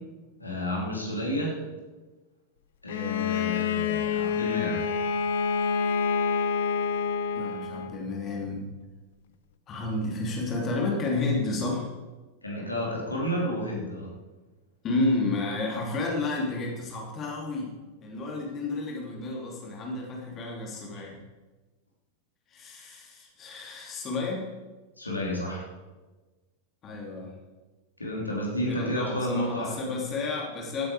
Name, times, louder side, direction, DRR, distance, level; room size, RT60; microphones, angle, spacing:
voice 1, 0.4-1.6 2.8-4.8 12.4-14.1 20.9-21.1 25.0-25.7 28.0-29.8, equal, 85° left, -3 dB, 3.1 m, -31 dB
Bowed string instrument, 2.9-8.0, left 6 dB, 55° left, 0.7 m, -27 dB
voice 2, 7.3-8.7 9.7-11.9 14.8-17.7 18.0-21.1 22.5-24.5 26.8-27.3 28.6-30.9, left 2 dB, 30° left, -1 dB, 3.1 m, -31 dB
15.0 x 8.8 x 4.8 m, 1.2 s
figure-of-eight pair, 90°, 0 cm